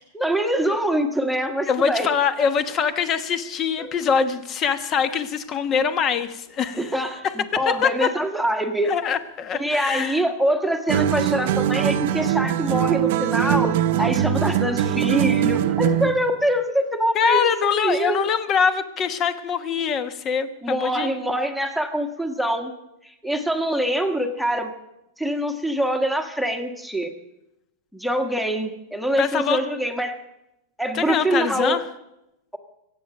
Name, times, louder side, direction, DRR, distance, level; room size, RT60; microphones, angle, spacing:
voice 1, 0.1-2.1 3.8-3.9 6.7-8.9 9.5-18.2 20.6-22.7 23.0-24.7 25.2-27.1 27.9-30.2 30.8-31.8, right 1 dB, ahead, 6 dB, 1.4 m, -24 dB
voice 2, 1.7-7.3 7.7-8.1 8.8-10.2 17.1-21.1 29.2-29.6 30.9-31.8, left 6 dB, 25° left, 11 dB, 1.1 m, -23 dB
sound 1, 10.9-16.2, right 11 dB, 60° right, 0.9 m, -22 dB
24.5 x 8.8 x 6.7 m, 0.87 s
supercardioid pair, 155°, 0 cm